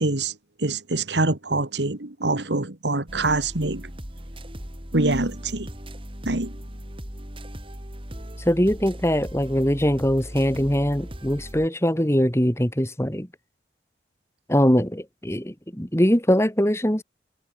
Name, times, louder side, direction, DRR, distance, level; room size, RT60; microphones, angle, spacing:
voice 1, 0.0-3.9 4.9-5.7 6.3-6.5, right 2 dB, 85° right, 2.2 m, -25 dB
sound 1, 3.1-11.7, equal, 30° right, 4.3 m, -38 dB
voice 2, 8.5-13.3 14.5-17.0, equal, 15° left, 2.5 m, -22 dB
head